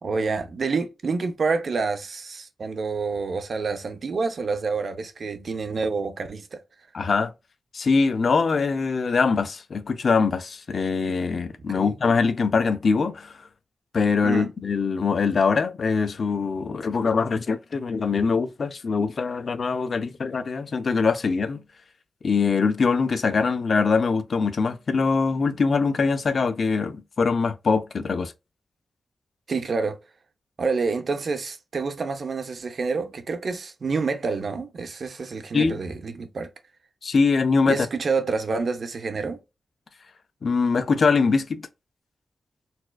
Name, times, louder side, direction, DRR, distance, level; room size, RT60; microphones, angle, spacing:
voice 1, 0.0-6.6 11.7-11.9 14.2-14.5 29.5-30.0 30.6-36.5 37.7-39.4, right 4 dB, 55° right, 0.6 m, -28 dB
voice 2, 6.9-7.3 7.7-13.3 13.9-21.6 22.2-28.3 35.5-35.8 37.0-37.9 40.4-41.7, left 4 dB, 55° left, 0.4 m, -23 dB
4.2 x 2.3 x 2.2 m
wide cardioid pair, 115°, 0 cm